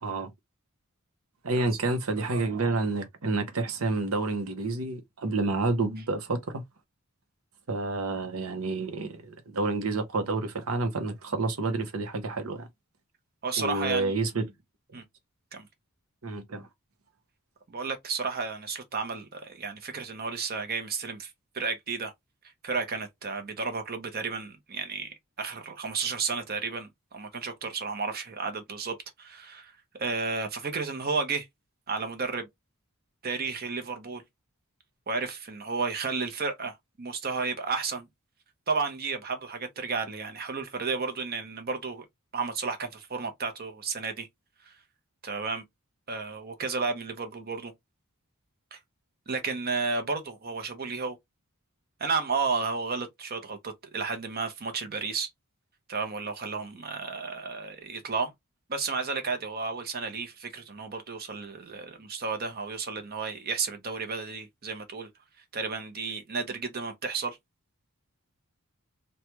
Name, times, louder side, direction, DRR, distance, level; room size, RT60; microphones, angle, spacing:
voice 1, 1.4-6.6 7.7-12.7 13.6-14.5 16.2-16.7, right 3 dB, 75° right, 0.8 m, -29 dB
voice 2, 2.3-2.7 13.4-14.2 14.9-15.0 15.5-15.7 17.7-22.1 22.6-26.9 27.1-29.7 30.0-31.5 31.9-32.5 33.2-34.2 35.1-38.1 38.7-42.0 42.3-44.3 44.6-44.7 45.2-45.6 46.1-47.7 48.7-48.8 49.3-51.2 52.0-55.3 55.9-58.3 58.7-65.1 65.5-67.4, right 4 dB, 45° right, 0.8 m, -32 dB
3.2 x 2.2 x 2.9 m
head